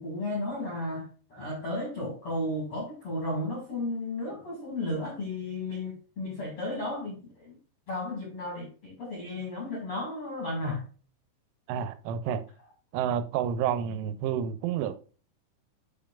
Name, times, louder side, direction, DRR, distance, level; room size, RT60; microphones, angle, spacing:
voice 1, 0.0-7.6 7.9-10.8, left 1 dB, 50° left, 1.7 m, -34 dB
voice 2, 11.7-12.4 12.9-14.9, right 9 dB, 90° right, 3.2 m, -29 dB
9.1 x 5.2 x 2.3 m
omnidirectional pair, 5.5 m